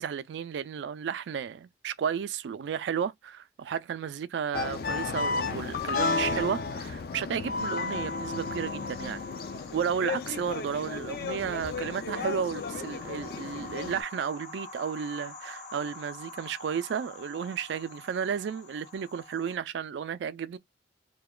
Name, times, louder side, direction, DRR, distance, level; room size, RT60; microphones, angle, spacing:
voice 1, 0.0-9.2 9.7-20.6, right 7 dB, 90° right, 0.3 m, -33 dB
sound 1, 4.5-14.0, left 4 dB, 55° left, 0.3 m, -33 dB
sound 2, 7.6-19.6, left 3 dB, 40° left, 0.8 m, -47 dB
2.8 x 2.1 x 2.2 m
head